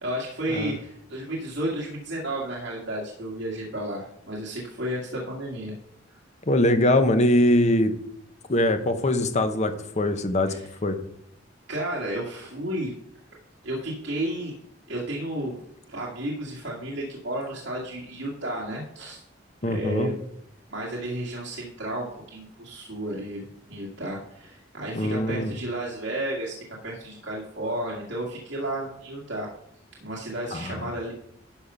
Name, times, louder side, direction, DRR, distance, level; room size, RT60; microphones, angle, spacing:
voice 1, 0.0-5.8 10.5-10.7 11.7-12.9 13.6-14.6 14.9-15.6 15.9-19.2 19.6-20.2 20.7-26.6 26.8-29.5 30.0-31.1, right 1 dB, 65° right, -4 dB, 2.1 m, -32 dB
voice 2, 6.5-7.9 8.5-10.5 10.8-11.0 19.6-20.1 25.0-25.5 30.5-30.7, left 1 dB, 35° left, 8 dB, 0.9 m, -22 dB
12.0 x 5.6 x 5.6 m, 0.72 s
head